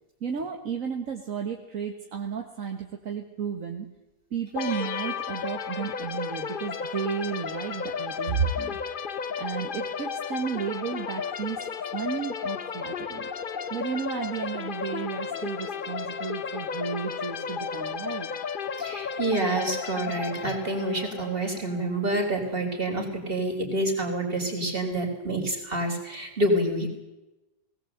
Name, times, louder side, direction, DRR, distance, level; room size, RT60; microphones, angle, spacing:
voice 1, 0.2-3.9 4.3-13.3 13.7-18.3, right 6 dB, 65° right, 3 dB, 1.8 m, -33 dB
sound 1, 4.6-22.2, left 6 dB, 45° left, 0.8 m, -33 dB
voice 2, 18.8-26.9, right 1 dB, 40° right, 2 dB, 4.0 m, -28 dB
19.5 x 17.5 x 7.9 m, 1.0 s
omnidirectional pair, 1.5 m